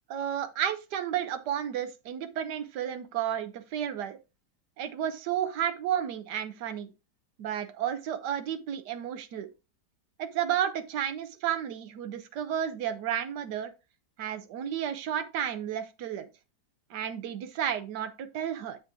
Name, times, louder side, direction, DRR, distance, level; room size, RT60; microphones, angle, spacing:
voice 1, 0.1-4.2 4.8-6.9 7.4-9.5 10.2-13.7 14.2-16.3 16.9-18.8, right 9 dB, 85° right, 1.4 m, -32 dB
7.7 x 5.4 x 3.6 m
omnidirectional pair, 1.8 m